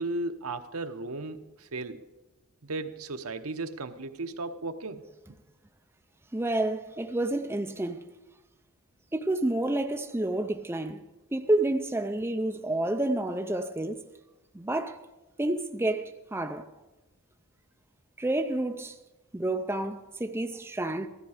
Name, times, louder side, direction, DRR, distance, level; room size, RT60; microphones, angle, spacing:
voice 1, 0.0-2.0 2.6-5.0, right 2 dB, 80° right, 0.9 m, -35 dB
voice 2, 6.3-8.0 9.1-11.0 11.3-14.0 14.5-15.0 15.4-16.7 18.2-18.9 19.3-21.1, right 1 dB, 10° right, 0.5 m, -29 dB
15.5 x 13.5 x 4.9 m
head